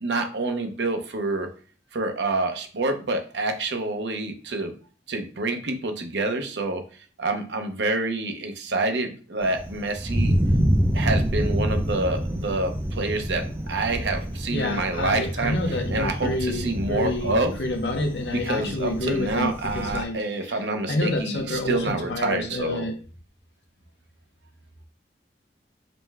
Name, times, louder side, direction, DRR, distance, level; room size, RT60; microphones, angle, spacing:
voice 1, 0.0-1.5 1.9-4.7 5.1-6.8 7.2-10.3 10.9-17.5 18.3-22.8, right 2 dB, 80° right, 5 dB, 0.8 m, -27 dB
Thunder, 9.4-20.0, equal, 15° right, 0.5 m, -27 dB
voice 2, 14.5-20.2 20.9-23.0, left 1 dB, 75° left, 5 dB, 0.8 m, -28 dB
5.2 x 2.1 x 3.5 m, 0.40 s
head